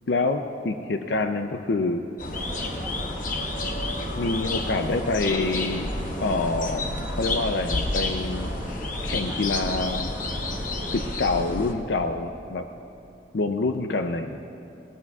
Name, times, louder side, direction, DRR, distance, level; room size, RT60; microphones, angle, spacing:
voice 1, 0.1-2.0 4.2-5.9 6.2-8.6 9.0-10.1 10.9-12.7 13.3-14.4, left 3 dB, 60° left, 6 dB, 0.5 m, -26 dB
sound 1, 2.2-11.7, left 2 dB, 45° left, 1.0 m, -30 dB
sound 2, 2.3-11.1, right 1 dB, 10° right, 1.3 m, -39 dB
20.0 x 18.0 x 2.4 m, 2.8 s
head